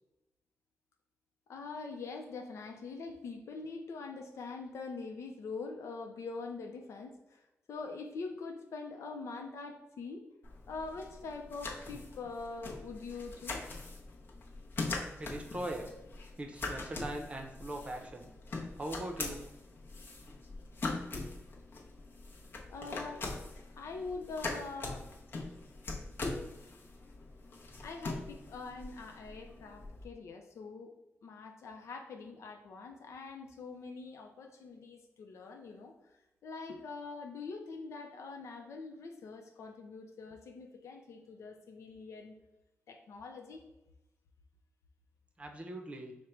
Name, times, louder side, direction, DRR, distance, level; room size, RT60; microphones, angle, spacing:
voice 1, 1.5-10.2 10.7-13.6 22.7-23.3 23.8-25.1 27.8-30.9 31.2-35.9 36.4-42.4 42.9-43.6, left 4 dB, 85° left, 3 dB, 0.5 m, -44 dB
sound 1, 10.4-30.0, left 3 dB, 45° left, 0.7 m, -42 dB
voice 2, 15.2-15.9 16.4-18.3 18.8-19.4 45.4-46.1, right 1 dB, 25° right, 3 dB, 0.6 m, -40 dB
5.0 x 2.1 x 4.4 m, 0.96 s
wide cardioid pair, 155°, 5 cm